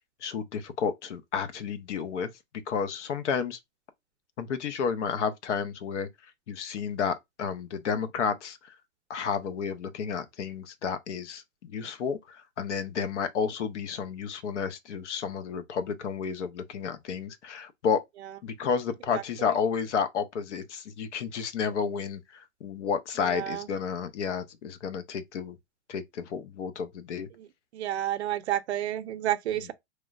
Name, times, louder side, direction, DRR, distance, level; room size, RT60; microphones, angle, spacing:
voice 1, 0.2-2.3 2.7-3.6 4.4-6.1 6.5-8.7 9.1-18.0 18.4-25.6 25.9-27.3, left 6 dB, 90° left, 0.6 m, -31 dB
voice 2, 19.1-19.6 23.2-23.7 27.4-27.5 27.7-29.7, right 12 dB, 70° right, 0.5 m, -31 dB
3.0 x 2.1 x 2.3 m
hypercardioid pair, 165°, 35 cm